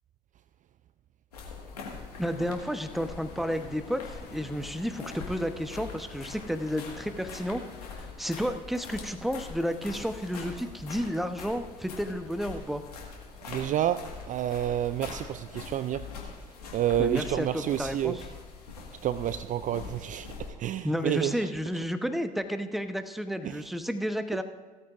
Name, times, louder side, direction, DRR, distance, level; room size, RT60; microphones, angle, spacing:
sound 1, 1.3-20.5, left 4 dB, 80° left, 1.8 m, -43 dB
sound 2, 2.1-8.1, left 5 dB, 60° left, 1.8 m, -50 dB
voice 1, 2.2-4.0 4.3-7.6 8.0-12.8 17.0-18.2 20.8-24.4, equal, ahead, 1.0 m, -31 dB
voice 2, 13.5-16.1 16.7-18.2 19.0-21.5 23.4-23.6, right 11 dB, 40° right, 0.4 m, -29 dB
17.0 x 13.5 x 2.6 m
figure-of-eight pair, 55°, 20 cm